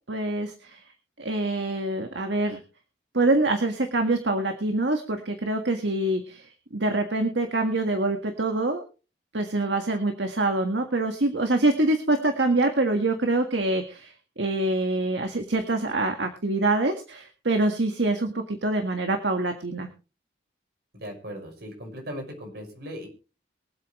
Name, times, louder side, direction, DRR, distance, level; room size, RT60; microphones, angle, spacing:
voice 1, 0.1-0.8 1.2-2.6 3.1-6.5 6.7-8.8 9.3-19.9, right 2 dB, 75° right, 5 dB, 1.7 m, -25 dB
voice 2, 20.9-23.1, equal, 60° right, 3 dB, 5.9 m, -38 dB
23.5 x 8.5 x 3.2 m, 0.33 s
head